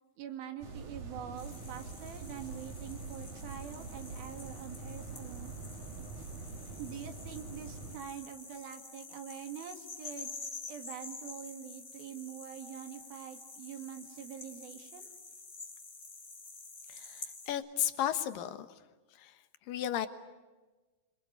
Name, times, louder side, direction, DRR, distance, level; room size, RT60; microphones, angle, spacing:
voice 1, 0.2-5.5 6.8-10.3 10.7-15.1, right 9 dB, 85° right, 6 dB, 3.8 m, -45 dB
sound 1, 0.6-8.0, right 3 dB, 60° right, 3.8 m, -44 dB
sound 2, 1.4-17.5, left 4 dB, 25° left, 3.0 m, -49 dB
voice 2, 16.9-18.8 19.1-20.1, left 11 dB, 75° left, 10 dB, 2.9 m, -35 dB
26.5 x 25.0 x 8.2 m, 1.2 s
omnidirectional pair, 4.2 m